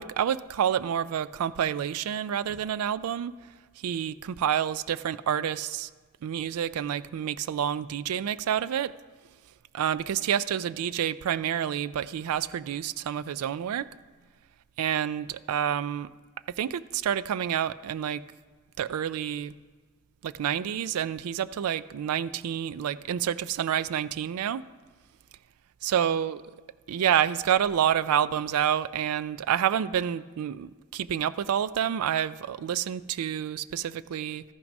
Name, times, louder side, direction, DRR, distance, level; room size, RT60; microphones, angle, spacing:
voice 1, 0.0-3.3 3.8-5.9 6.2-8.9 9.7-13.9 14.8-16.1 16.6-18.2 18.8-19.6 20.2-24.6 25.8-26.4 26.9-34.4, right 9 dB, 90° right, 17 dB, 0.3 m, -28 dB
13.0 x 5.9 x 5.3 m, 1.5 s
head